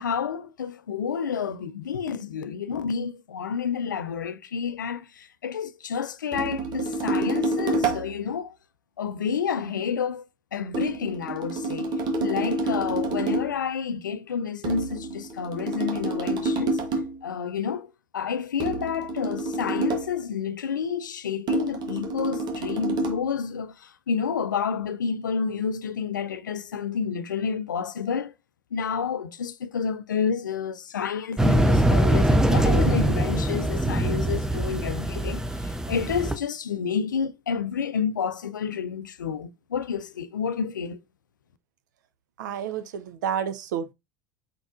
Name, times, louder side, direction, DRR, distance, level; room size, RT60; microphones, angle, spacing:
voice 1, 0.0-8.6 9.0-10.3 10.5-16.8 17.2-28.3 28.7-41.0, left 6 dB, 85° left, 0.4 m, -30 dB
sound 1, 6.3-8.2 10.7-13.6 14.6-17.2 18.6-20.2 21.5-23.3, right 2 dB, 45° right, 1.2 m, -28 dB
sound 2, 31.4-36.4, right 1 dB, 5° right, 0.5 m, -22 dB
voice 2, 42.4-43.9, right 8 dB, 75° right, 0.6 m, -30 dB
4.6 x 4.0 x 2.5 m
hypercardioid pair, 75°, 10 cm